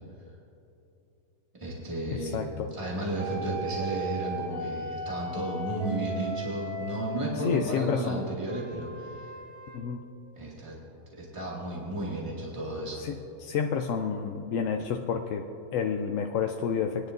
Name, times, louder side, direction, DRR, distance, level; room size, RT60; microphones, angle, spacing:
voice 1, 1.5-9.3 10.3-10.8 11.1-13.1, right 1 dB, 20° right, -5 dB, 2.0 m, -33 dB
voice 2, 2.1-2.7 7.4-8.2 9.7-10.0 13.0-17.1, left 6 dB, 70° left, 3 dB, 0.9 m, -30 dB
sound 1, 3.2-7.9 8.5-9.8, equal, 75° right, 2.0 m, -37 dB
21.0 x 10.0 x 2.6 m, 2.8 s
omnidirectional pair, 1.5 m